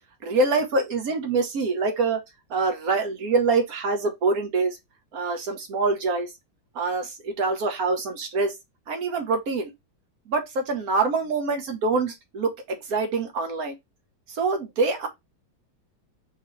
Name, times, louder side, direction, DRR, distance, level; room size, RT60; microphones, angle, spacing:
voice 1, 0.2-2.2 2.5-4.8 5.1-6.3 6.7-8.5 8.9-9.7 10.3-13.8 14.3-15.1, right 3 dB, 55° right, 1.2 m, -25 dB
4.8 x 2.9 x 3.1 m
omnidirectional pair, 2.1 m